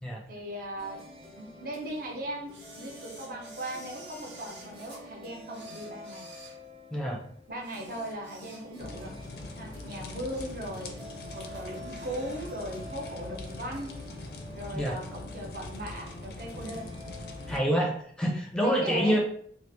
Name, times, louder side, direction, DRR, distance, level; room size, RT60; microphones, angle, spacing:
voice 1, 0.3-1.0 1.4-2.5 2.8-6.3 7.5-9.1 9.6-10.9 11.3-13.9 14.5-16.9 17.7-17.9 18.6-19.2, right 1 dB, 50° right, 0 dB, 0.7 m, -38 dB
sound 1, 0.8-17.5, left 1 dB, 35° right, 1.0 m, -48 dB
Camera, 2.5-5.0 5.5-7.1 7.6-9.0 9.3-9.5 10.0-10.6 10.9-11.0 11.4-12.5 12.8-12.9, right 2 dB, 80° right, 1.1 m, -51 dB
voice 2, 6.9-7.2 14.7-15.0 17.5-19.2, equal, 5° left, 0 dB, 0.5 m, -27 dB
sound 2, 8.8-17.6, left 2 dB, 60° left, 0.4 m, -42 dB
3.0 x 2.4 x 3.3 m, 0.62 s
head